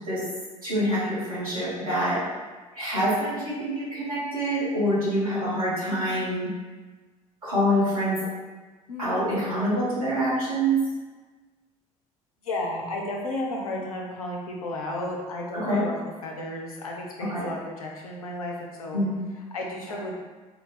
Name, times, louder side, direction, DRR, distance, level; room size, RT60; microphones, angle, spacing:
voice 1, 0.6-2.2 2.7-6.5 7.4-8.2 9.0-10.8 15.5-15.8 17.3-17.4 18.9-19.3, equal, 80° right, -11 dB, 1.4 m, -26 dB
voice 2, 12.4-16.0 16.2-19.0 19.3-20.2, left 1 dB, 80° left, -1 dB, 0.5 m, -33 dB
3.6 x 2.3 x 2.2 m, 1.3 s
figure-of-eight pair, 55°, 18 cm